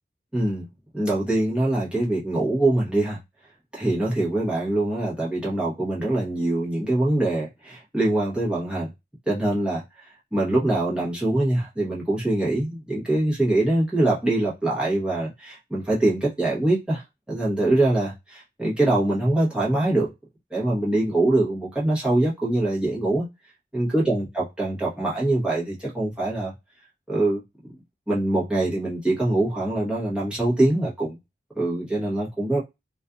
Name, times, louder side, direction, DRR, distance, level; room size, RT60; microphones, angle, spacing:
voice 1, 0.3-0.7 0.9-3.2 3.7-8.9 9.3-9.8 10.3-20.1 20.5-23.3 23.7-26.5 27.1-27.4 28.1-31.2 31.5-32.6, right 2 dB, 5° right, 0.9 m, -23 dB
2.5 x 2.4 x 2.3 m
head